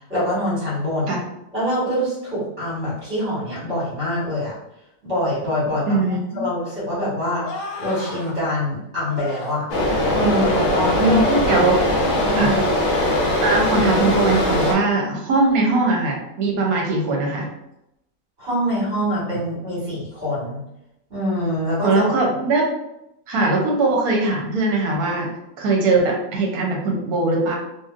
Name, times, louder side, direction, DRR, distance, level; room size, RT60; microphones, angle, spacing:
voice 1, 0.1-1.2 1.5-4.5 5.0-6.0 6.3-7.5 7.8-9.7 10.1-11.7 12.2-12.6 18.4-20.6 21.1-22.0, equal, 50° right, -8 dB, 1.9 m, -24 dB
voice 2, 5.9-6.5 11.0-11.7 12.4-12.5 13.4-17.5 21.8-22.7 23.3-25.3 25.6-27.6, right 2 dB, 80° right, 0 dB, 1.2 m, -20 dB
sound 1, 7.4-8.4 9.1-9.6 10.1-11.7 12.0-12.4 12.7-13.2 13.6-13.9, left 3 dB, 70° left, 0.9 m, -35 dB
sound 2, 9.7-14.7, left 1 dB, 55° left, 0.5 m, -20 dB
3.0 x 2.5 x 2.4 m, 0.86 s
omnidirectional pair, 1.5 m